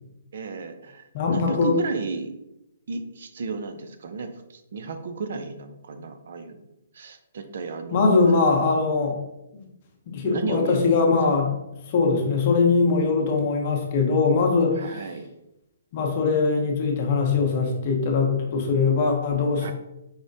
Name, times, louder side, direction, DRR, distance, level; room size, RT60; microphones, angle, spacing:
voice 1, 0.3-2.3 2.9-6.6 6.9-8.2 10.2-10.8 11.2-11.4 14.7-15.3 19.6-19.7, right 4 dB, 65° right, 8 dB, 0.4 m, -33 dB
voice 2, 1.1-1.8 7.9-9.2 9.5-9.6 10.1-11.5 11.9-14.8 15.9-19.7, left 4 dB, 45° left, 1 dB, 0.7 m, -21 dB
4.8 x 2.0 x 2.6 m, 0.86 s
hypercardioid pair, 135°, 0 cm